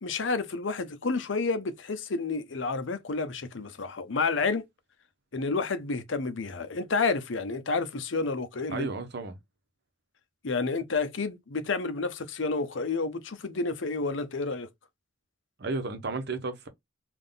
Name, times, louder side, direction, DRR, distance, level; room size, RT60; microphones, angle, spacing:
voice 1, 0.0-4.7 5.3-8.9 10.4-14.7, left 4 dB, 70° left, 0.7 m, -30 dB
voice 2, 8.7-9.4 15.6-16.7, right 3 dB, 60° right, 0.8 m, -33 dB
3.6 x 2.5 x 3.8 m
head